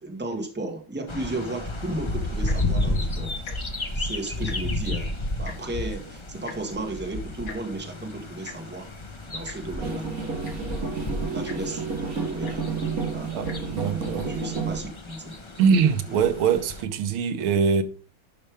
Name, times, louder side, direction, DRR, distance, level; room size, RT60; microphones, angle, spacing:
voice 1, 0.0-3.3 3.9-5.1 5.4-8.9 9.3-10.1 11.2-12.6 13.1-13.3 13.8-15.3 16.1-16.2, right 2 dB, 5° right, 1.3 m, -34 dB
sound 1, 1.1-16.8, left 2 dB, 35° left, 0.4 m, -32 dB
Tick-tock, 2.3-2.7 3.4-3.6 3.9-4.0 4.3-4.8 5.5-5.6 6.5-6.6 7.5-7.6 8.5-8.6 9.5-9.6 10.2-10.3 10.4-10.8 11.5-11.6 12.5-12.6 13.4-13.6 14.3-14.4, left 6 dB, 90° left, 2.4 m, -41 dB
sound 2, 9.8-14.8, right 5 dB, 45° right, 1.9 m, -30 dB
voice 2, 13.3-14.3 15.6-17.8, right 6 dB, 85° right, 1.8 m, -23 dB
11.0 x 5.5 x 3.4 m
omnidirectional pair, 2.2 m